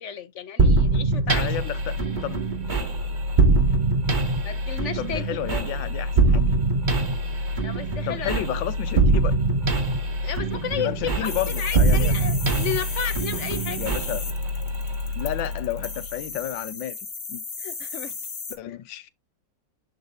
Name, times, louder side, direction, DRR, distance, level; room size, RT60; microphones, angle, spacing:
voice 1, 0.0-1.7 4.4-5.4 7.6-8.3 10.2-10.9 11.2-11.3 11.6-13.9 17.6-18.1 18.7-18.8, left 8 dB, 65° left, 0.7 m, -33 dB
sound 1, 0.6-16.2, right 2 dB, 30° right, 1.2 m, -23 dB
voice 2, 1.3-2.5 5.0-6.5 8.0-9.3 10.7-12.1 13.8-14.2 15.1-17.0 17.3-17.4 18.5-19.1, left 13 dB, 80° left, 1.4 m, -31 dB
sound 2, 11.2-18.6, left 4 dB, 40° left, 1.9 m, -35 dB
10.5 x 3.8 x 2.7 m
omnidirectional pair, 2.0 m